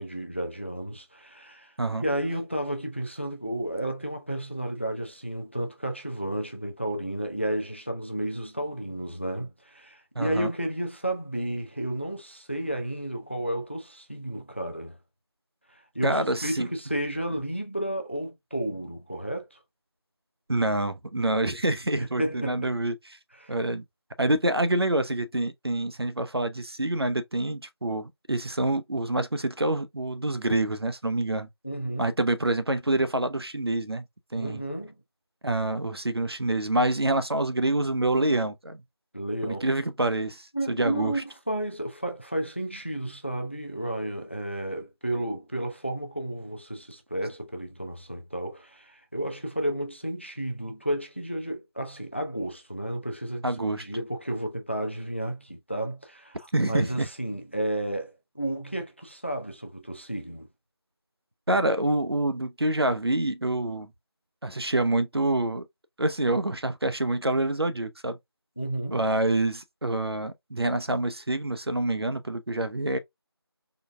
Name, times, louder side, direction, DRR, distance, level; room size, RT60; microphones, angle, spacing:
voice 1, 0.0-15.0 15.7-19.6 22.0-22.7 23.4-23.5 31.6-32.2 34.4-35.0 39.1-39.7 40.5-60.5 68.6-69.0, right 1 dB, 25° left, 0.5 m, -32 dB
voice 2, 10.2-10.5 16.0-16.7 20.5-22.9 23.5-23.8 24.2-31.5 32.0-34.0 34.3-34.6 35.4-38.8 39.4-41.1 53.4-53.8 56.5-57.1 61.5-63.9 64.4-65.7 66.0-68.2 68.9-73.0, right 1 dB, 65° right, 0.7 m, -26 dB
3.9 x 3.2 x 2.2 m
figure-of-eight pair, 175°, 14 cm